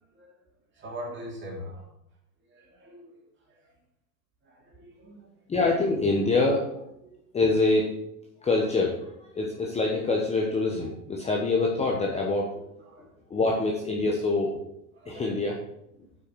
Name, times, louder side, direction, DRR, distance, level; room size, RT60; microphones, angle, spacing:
voice 1, 0.1-0.4 0.7-1.9 2.5-3.2 3.5-3.7 4.4-5.3 7.0-7.3 11.2-11.3 12.8-13.1 14.9-15.3, equal, 25° right, -2 dB, 2.9 m, -43 dB
voice 2, 5.5-6.7 7.3-7.9 8.4-12.6 13.3-14.5 15.1-15.6, left 3 dB, 15° left, -1 dB, 1.0 m, -25 dB
8.0 x 6.0 x 4.7 m, 0.80 s
hypercardioid pair, 120°, 47 cm